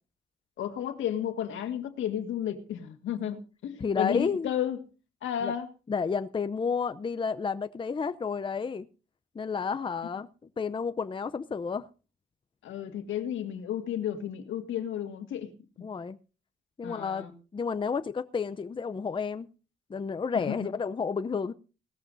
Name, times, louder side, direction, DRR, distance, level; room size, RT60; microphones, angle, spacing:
voice 1, 0.6-4.8 5.2-5.7 12.6-15.5 16.8-17.3 20.4-20.7, left 10 dB, 75° left, 1.9 m, -33 dB
voice 2, 3.8-4.5 5.4-5.5 5.9-8.9 9.3-10.3 10.6-11.9 15.8-16.2 16.8-17.2 17.5-19.5 19.9-21.5, left 5 dB, 25° left, 0.6 m, -31 dB
18.5 x 14.0 x 2.7 m
cardioid pair, 90°, 20 cm